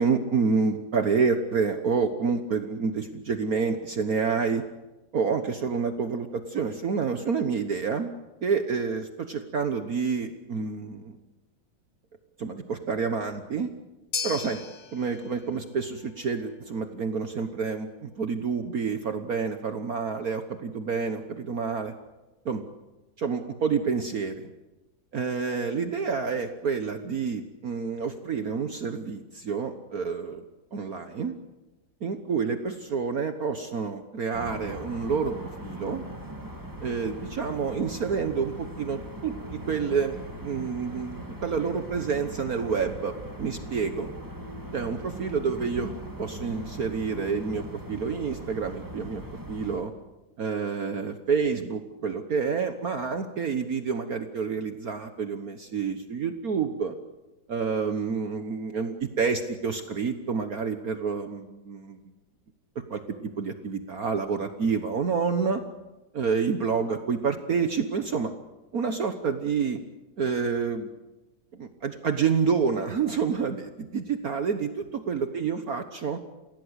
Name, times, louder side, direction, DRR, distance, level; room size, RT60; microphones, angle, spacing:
voice 1, 0.0-4.6 5.1-8.1 8.4-11.2 12.4-13.7 14.2-14.6 14.9-21.9 22.4-22.6 23.2-24.5 25.1-30.4 30.7-31.3 32.0-35.3 35.6-36.0 36.8-44.1 44.7-45.9 46.2-49.9 50.4-56.9 57.5-62.0 62.7-63.0 63.4-65.6 66.1-68.3 68.7-69.8 70.2-70.9 71.6-76.2, right 5 dB, 50° right, 8 dB, 1.5 m, -28 dB
sound 1, 14.1-22.5, left 5 dB, 35° left, 1.0 m, -42 dB
sound 2, 34.3-49.8, right 1 dB, 10° right, 2.7 m, -40 dB
29.0 x 17.0 x 8.1 m, 1.1 s
omnidirectional pair, 2.1 m